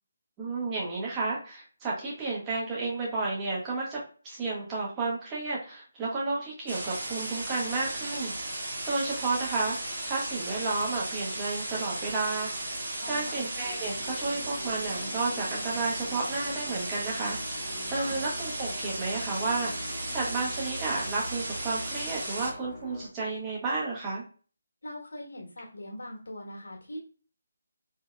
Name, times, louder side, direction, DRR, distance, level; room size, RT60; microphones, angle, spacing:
voice 1, 0.4-8.3 8.9-12.5 13.0-19.7 20.1-24.2, right 3 dB, 15° right, -5 dB, 1.4 m, -32 dB
sound 1, 6.7-22.5, right 1 dB, 50° right, 1.5 m, -35 dB
voice 2, 13.0-13.5 18.0-18.2 24.8-27.0, left 1 dB, 65° left, 0 dB, 1.7 m, -41 dB
sound 2, 13.6-23.1, left 1 dB, 45° left, 1.1 m, -44 dB
3.7 x 3.5 x 2.2 m, 0.38 s
figure-of-eight pair, 150°, 0 cm